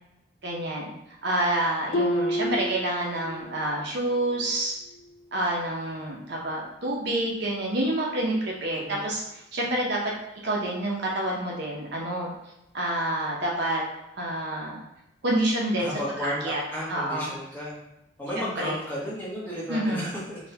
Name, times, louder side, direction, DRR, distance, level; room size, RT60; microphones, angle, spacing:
voice 1, 0.4-0.9 1.2-4.7 5.3-10.1 10.4-12.3 12.7-13.8 14.2-14.8 15.2-16.0 16.4-16.6 16.9-17.3 18.4-18.8 19.7-20.1, right 1 dB, 50° right, -3 dB, 0.6 m, -28 dB
Harp, 1.9-3.7 4.0-4.5 5.0-5.1, equal, 70° left, 0.4 m, -30 dB
voice 2, 8.7-9.0 15.8-17.8 18.2-20.4, equal, 10° left, -7 dB, 0.8 m, -33 dB
4.0 x 2.2 x 2.7 m, 0.87 s
head